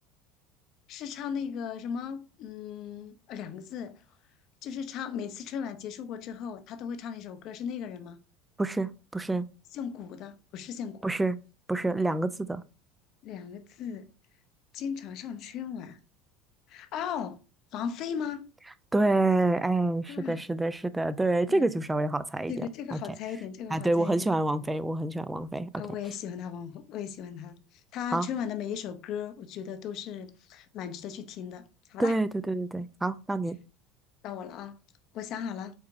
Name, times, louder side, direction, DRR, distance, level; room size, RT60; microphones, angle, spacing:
voice 1, 0.9-4.0 4.6-8.2 9.7-11.1 13.2-14.1 14.7-16.0 16.7-17.4 17.7-18.5 20.1-20.4 21.5-21.7 22.5-24.3 25.8-32.2 34.2-34.8 35.1-35.7, left 8 dB, 55° left, 0.6 m, -37 dB
voice 2, 8.6-9.5 11.0-11.4 11.7-12.6 18.9-23.0 23.7-25.7 28.1-28.3 32.0-33.6, right 2 dB, 10° right, 0.4 m, -27 dB
4.7 x 4.1 x 2.5 m
hypercardioid pair, 75°, 0 cm